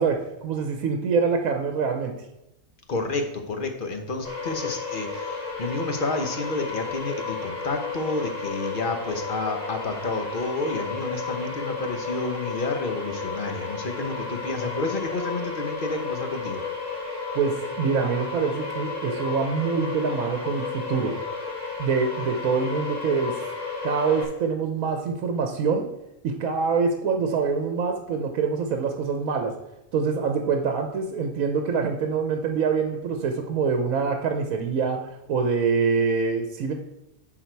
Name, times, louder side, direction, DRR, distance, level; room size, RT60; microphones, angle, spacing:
voice 1, 0.0-2.1 17.3-21.2 21.8-23.5 23.8-25.9 26.2-29.5 29.9-36.7, right 5 dB, 75° right, 5 dB, 1.2 m, -25 dB
voice 2, 2.9-16.6, left 3 dB, 40° left, 5 dB, 1.1 m, -30 dB
sound 1, 4.2-24.2, left 4 dB, 40° right, 2.6 m, -33 dB
11.0 x 4.1 x 4.5 m, 0.90 s
omnidirectional pair, 1.5 m